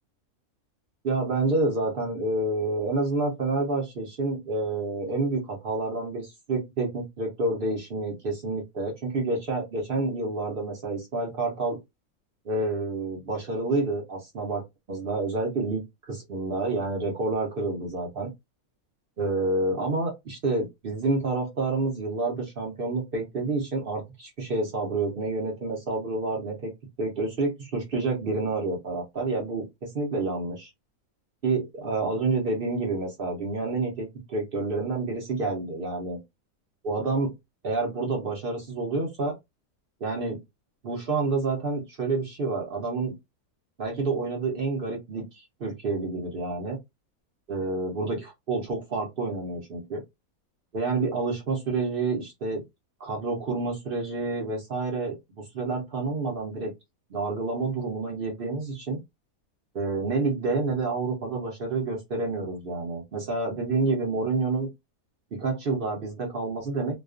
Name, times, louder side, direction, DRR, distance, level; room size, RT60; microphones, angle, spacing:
voice 1, 1.0-11.8 12.5-14.6 14.9-18.3 19.2-26.7 27.0-30.7 31.4-36.2 36.8-37.3 37.6-39.3 40.0-40.4 40.8-43.1 43.8-46.8 47.5-50.0 50.7-52.6 53.0-56.7 57.1-59.0 59.7-64.7 65.3-67.0, right 3 dB, 60° right, 1 dB, 0.6 m, -28 dB
2.4 x 2.2 x 2.3 m, 0.20 s
omnidirectional pair, 1.6 m